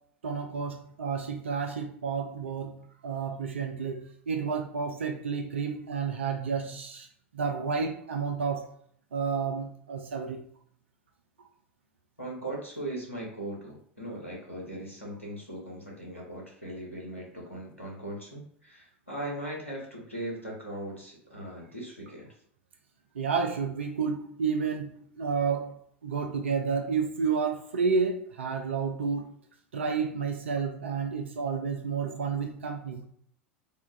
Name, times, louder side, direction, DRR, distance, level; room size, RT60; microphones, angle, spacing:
voice 1, 0.2-7.1 7.3-8.7 9.1-10.4 23.2-29.3 29.7-33.0, right 5 dB, 70° right, 0.4 m, -31 dB
voice 2, 12.2-22.3, right 1 dB, 90° left, 1.0 m, -39 dB
3.5 x 2.2 x 2.6 m
figure-of-eight pair, 80°, 7 cm